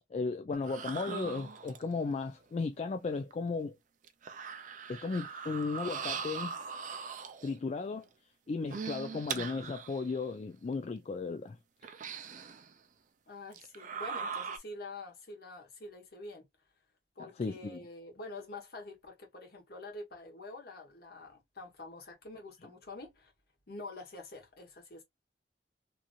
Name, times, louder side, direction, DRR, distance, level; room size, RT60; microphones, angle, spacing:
voice 1, 0.1-3.8 4.9-6.5 7.4-8.1 8.5-11.6 17.2-17.8, left 4 dB, 40° left, 0.3 m, -35 dB
sound 1, 0.5-2.0 3.3-3.4 4.0-7.6 8.5-10.2 10.7-10.8 11.8-12.7 13.5-14.6, right 6 dB, 45° right, 0.4 m, -40 dB
voice 2, 13.3-16.5 17.2-23.3 23.7-25.0, left 2 dB, 60° left, 1.2 m, -47 dB
2.9 x 2.6 x 2.4 m
head